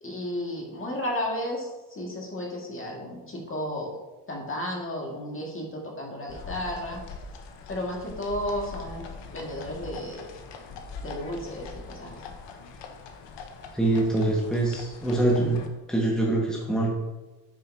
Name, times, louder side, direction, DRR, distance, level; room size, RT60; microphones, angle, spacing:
voice 1, 0.0-3.9 4.3-7.0 7.7-9.0 9.3-10.3 11.0-12.2, left 1 dB, 30° left, -1 dB, 1.7 m, -33 dB
sound 1, 6.3-15.7, left 4 dB, 75° left, 0.9 m, -42 dB
voice 2, 13.7-15.6 15.9-16.9, right 2 dB, ahead, -3 dB, 1.3 m, -24 dB
7.3 x 5.5 x 2.6 m, 1.1 s
cardioid pair, 90°, 43 cm